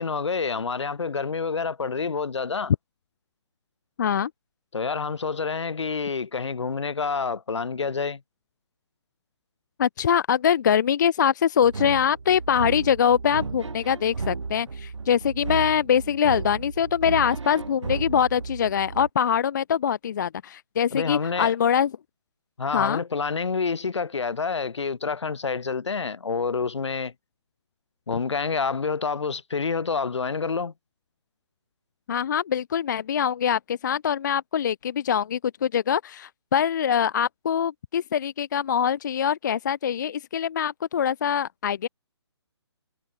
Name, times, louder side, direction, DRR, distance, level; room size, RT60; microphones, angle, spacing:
voice 1, 0.0-2.7 4.7-8.2 20.9-21.5 22.6-27.1 28.1-30.7, left 5 dB, 75° left, 2.7 m, -28 dB
voice 2, 4.0-4.3 9.8-21.9 22.7-23.0 32.1-41.9, left 8 dB, 40° left, 0.4 m, -23 dB
sound 1, 11.6-19.1, right 4 dB, 85° right, 2.1 m, -34 dB
hypercardioid pair, 155°, 15 cm